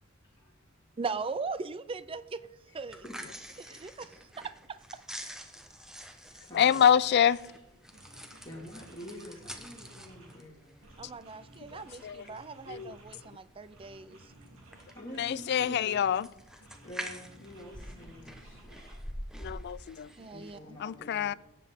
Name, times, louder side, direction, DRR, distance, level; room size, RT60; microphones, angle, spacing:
voice 1, 1.0-2.4 2.7-3.0 3.6-5.0 11.0-14.3 20.2-20.8, right 4 dB, 25° right, 0.4 m, -39 dB
voice 2, 2.7-3.2 5.7-5.8 6.3-6.9 7.4-7.9 8.4-11.0 13.5-13.6 14.9-16.2 16.5-18.8 20.2-21.4, left 1 dB, 20° left, 2.0 m, -48 dB
sound 1, 2.8-20.6, equal, 5° right, 0.9 m, -47 dB
voice 3, 6.5-7.4 12.0-12.2 12.7-12.9 15.2-16.3 19.4-20.1 20.8-21.3, left 8 dB, 50° left, 0.3 m, -26 dB
sound 2, 7.4-7.5 7.9-10.5 10.8-13.4 13.7-16.2 16.6-19.0, right 1 dB, 75° right, 3.2 m, -56 dB
17.5 x 7.6 x 3.6 m
head